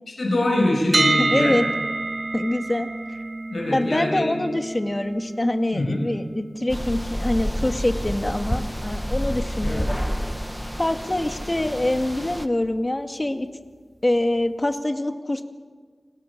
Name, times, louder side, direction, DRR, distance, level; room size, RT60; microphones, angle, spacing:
voice 1, 0.2-1.6 3.5-4.3 5.7-6.0 9.6-9.8, left 1 dB, 80° left, -1 dB, 6.6 m, -23 dB
sound 1, 0.9-12.8, right 2 dB, 55° right, 1.4 m, -31 dB
voice 2, 1.2-1.7 2.3-2.9 3.7-10.0 10.8-13.5 14.0-15.4, left 1 dB, 30° left, 6 dB, 2.3 m, -25 dB
sound 2, 6.7-12.5, equal, 5° left, 1.6 m, -29 dB
29.5 x 20.5 x 7.4 m, 1.5 s
cardioid pair, 45°, 0 cm